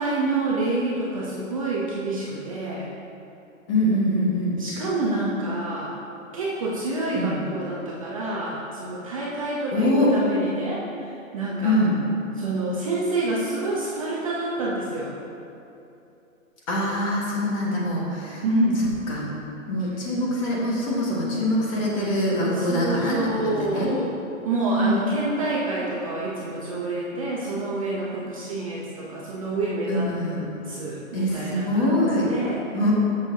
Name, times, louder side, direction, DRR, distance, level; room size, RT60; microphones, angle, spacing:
voice 1, 0.0-2.9 4.6-5.9 6.3-11.8 12.4-15.1 18.4-18.9 22.4-24.1 24.4-30.1 30.7-32.6, right 2 dB, 25° right, -5 dB, 0.7 m, -28 dB
voice 2, 3.7-4.6 7.1-7.4 9.7-10.1 11.6-12.0 16.7-18.4 19.1-19.2 19.7-23.2 23.4-23.9 24.6-25.0 29.9-30.4 31.1-32.3 32.7-32.9, left 1 dB, 25° left, -5 dB, 1.5 m, -24 dB
13.0 x 6.6 x 2.8 m, 2.8 s
hypercardioid pair, 165°, 40 cm